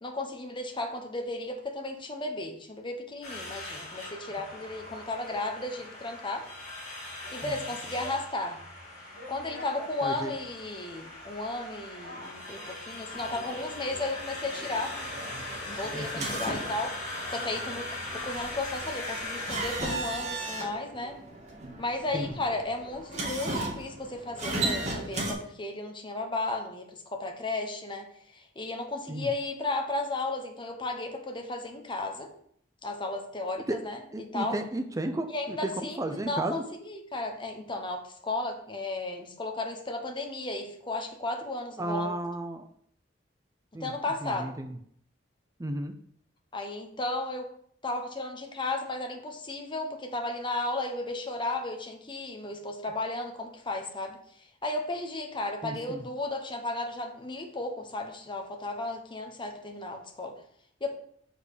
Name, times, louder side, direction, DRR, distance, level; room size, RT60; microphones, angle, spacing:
voice 1, 0.0-6.5 7.3-8.6 9.3-15.0 15.7-16.9 17.3-21.2 21.8-28.1 28.3-32.3 32.8-34.6 35.3-42.1 43.8-44.5 46.5-47.5 47.8-54.2 54.6-60.3 60.8-60.9, left 2 dB, 25° left, 4 dB, 1.1 m, -34 dB
sound 1, 3.2-19.8, left 2 dB, 45° left, 3.0 m, -40 dB
voice 2, 10.0-10.4 15.9-16.3 22.1-22.3 29.1-29.3 33.7-33.8 34.1-36.6 41.8-42.7 43.7-43.9 44.2-44.7 45.6-45.9 55.6-56.0, right 1 dB, 20° right, 7 dB, 0.5 m, -33 dB
sound 2, 13.1-25.3, right 2 dB, 40° right, 1.8 m, -37 dB
6.5 x 5.2 x 4.9 m, 0.64 s
head